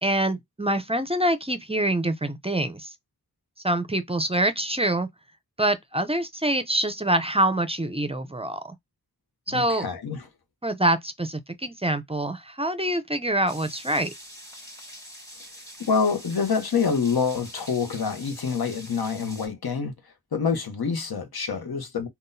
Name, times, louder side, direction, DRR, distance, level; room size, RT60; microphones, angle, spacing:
voice 1, 0.0-2.9 3.6-5.1 5.6-8.7 9.5-9.9 10.6-14.1, right 1 dB, 15° right, 0.4 m, -25 dB
voice 2, 9.5-10.2 15.8-19.9 20.3-22.1, left 5 dB, 85° left, 0.8 m, -26 dB
sound 1, 13.5-19.5, equal, 10° left, 1.1 m, -44 dB
3.8 x 2.1 x 2.6 m
wide cardioid pair, 60°, 36 cm